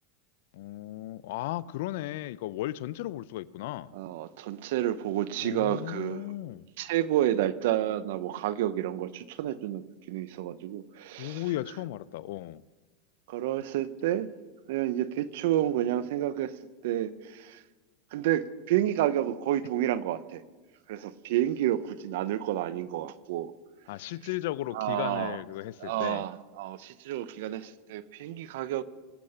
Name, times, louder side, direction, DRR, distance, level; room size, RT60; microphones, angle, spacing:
voice 1, 0.5-3.9 5.4-6.7 11.2-12.6 23.9-26.2, left 15 dB, 70° left, 0.5 m, -35 dB
voice 2, 3.9-6.3 6.8-11.4 13.3-14.3 14.7-16.5 16.8-17.6 18.1-20.4 20.9-23.5 24.7-25.4 25.8-28.8, right 12 dB, 70° right, 0.8 m, -30 dB
24.5 x 8.5 x 5.8 m
hypercardioid pair, 105°, 0 cm